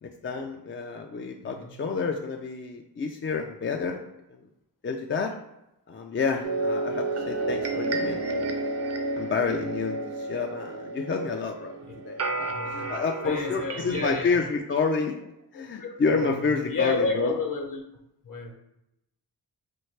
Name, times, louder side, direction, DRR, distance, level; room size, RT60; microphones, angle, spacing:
voice 1, 0.0-4.0 4.3-4.4 4.8-5.4 5.9-8.5 9.2-11.7 12.0-15.2 15.5-17.3, left 4 dB, 30° left, 2 dB, 0.4 m, -29 dB
sound 1, 6.4-14.6, right 2 dB, 35° right, 0.5 m, -31 dB
voice 2, 12.5-13.0 13.2-14.4 15.5-17.8 18.2-18.5, left 3 dB, 50° left, 3 dB, 0.9 m, -32 dB
4.4 x 2.3 x 3.2 m, 0.85 s
cardioid pair, 45°, 42 cm